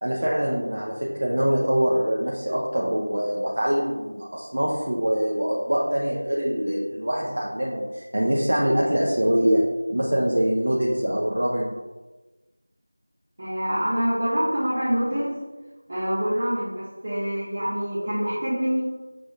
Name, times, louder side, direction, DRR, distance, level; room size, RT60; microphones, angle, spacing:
voice 1, 0.0-9.6 9.9-11.7, equal, 65° right, -5 dB, 0.6 m, -24 dB
voice 2, 13.4-15.4 15.9-18.8, equal, 40° right, -11 dB, 0.9 m, -25 dB
6.1 x 2.6 x 2.3 m, 1.2 s
figure-of-eight pair, 175°, 0 cm